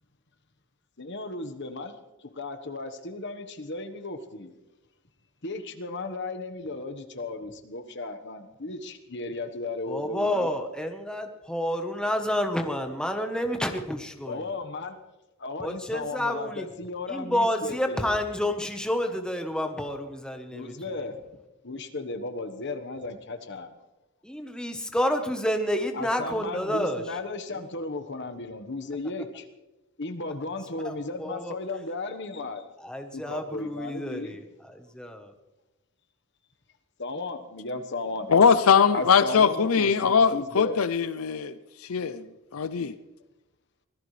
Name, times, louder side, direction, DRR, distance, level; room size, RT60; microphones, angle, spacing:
voice 1, 1.0-1.9 2.3-4.5 5.4-10.5 14.3-15.0 15.4-18.2 20.5-21.2 21.6-23.7 25.9-29.4 30.0-32.6 33.1-34.4 37.0-38.3 38.9-40.8, left 3 dB, 55° left, 1.3 m, -35 dB
voice 2, 9.9-14.5 15.6-16.7 17.1-20.9 24.2-27.2 27.5-27.7 30.8-31.5 32.8-35.3, left 1 dB, 5° left, 1.1 m, -29 dB
voice 3, 38.3-41.6 41.8-42.2 42.5-42.9, left 6 dB, 75° left, 0.6 m, -21 dB
24.5 x 17.0 x 3.3 m
head